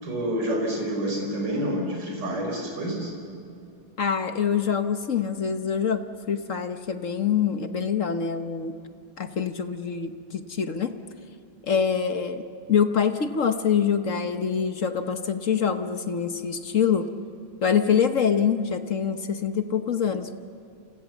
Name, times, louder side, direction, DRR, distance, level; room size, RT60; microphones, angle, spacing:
voice 1, 0.0-3.1, right 1 dB, 55° right, 1 dB, 5.2 m, -28 dB
voice 2, 4.0-8.8 9.2-10.9 11.6-12.4 12.7-17.1 17.6-20.3, left 7 dB, 45° left, 8 dB, 1.2 m, -25 dB
28.5 x 28.5 x 7.2 m, 2.6 s
omnidirectional pair, 2.2 m